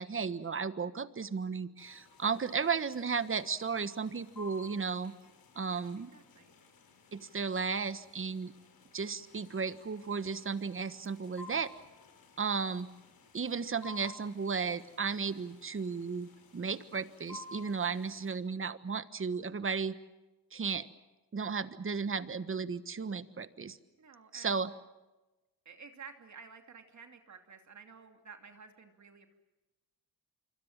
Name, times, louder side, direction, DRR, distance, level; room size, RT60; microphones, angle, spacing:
voice 1, 0.0-5.1 5.6-6.1 7.1-8.5 8.9-11.7 12.4-12.9 13.3-19.9 20.5-20.9 21.3-23.8 24.3-24.7, right 5 dB, 35° right, 13 dB, 1.4 m, -34 dB
sound 1, 1.8-18.3, left 3 dB, 70° left, 5.7 m, -55 dB
voice 2, 5.7-6.6 24.0-24.7 25.6-29.4, right 6 dB, 50° right, 5 dB, 2.8 m, -53 dB
26.5 x 24.5 x 7.4 m, 1.1 s
cardioid pair, 95°, 36 cm